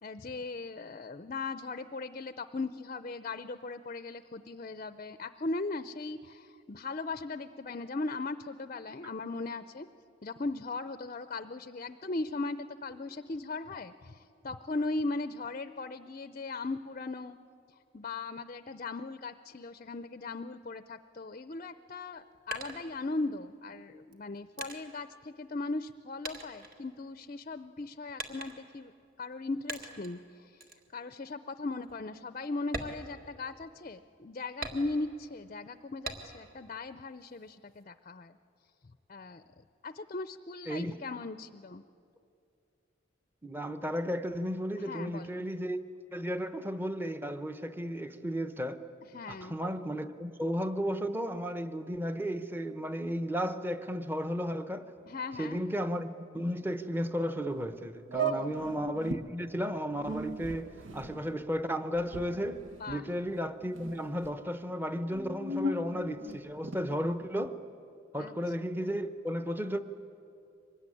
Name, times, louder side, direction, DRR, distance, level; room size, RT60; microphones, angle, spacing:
voice 1, 0.0-9.9 10.2-17.4 17.9-28.9 29.2-30.5 30.9-38.4 39.1-39.4 39.8-41.8 44.8-45.4 49.1-49.6 55.1-55.6 58.1-58.5 62.8-63.0 68.2-68.3, left 3 dB, 40° left, 0.5 m, -38 dB
sound 1, 22.0-23.5 24.1-26.0 26.2-27.4 28.2-28.8 29.7-30.2 30.6-30.9 31.3-31.4 31.8-32.0 32.6-33.8 34.6-35.3 36.0-36.6 37.0-37.8, right 3 dB, 50° right, 1.9 m, -42 dB
voice 2, 40.7-41.0 43.4-45.8 46.1-48.8 49.3-54.9 55.4-62.6 62.9-67.6 68.1-69.8, equal, 10° right, 0.8 m, -34 dB
sound 2, 57.5-57.6 58.1-59.3 59.9-63.4 63.7-64.3 65.0-67.0, right 2 dB, 80° right, 1.3 m, -37 dB
24.5 x 20.5 x 9.9 m
head